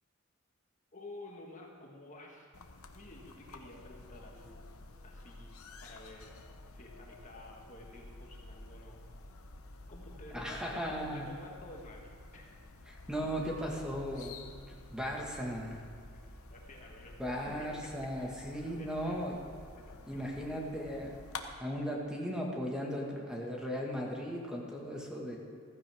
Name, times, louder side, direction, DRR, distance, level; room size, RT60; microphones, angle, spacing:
voice 1, 0.9-2.6 2.9-4.6 5.0-6.4 6.7-9.0 9.9-12.4 16.1-17.2 17.5-19.4 19.7-20.3, left 2 dB, 35° left, 0 dB, 1.6 m, -52 dB
sound 1, 2.5-21.4, left 2 dB, 85° left, 1.0 m, -51 dB
voice 2, 10.3-11.3 12.9-14.4 14.7-15.8 17.2-19.4 20.1-21.2 21.6-25.4, equal, 5° right, -2 dB, 1.7 m, -37 dB
15.0 x 15.0 x 3.6 m, 2.2 s
head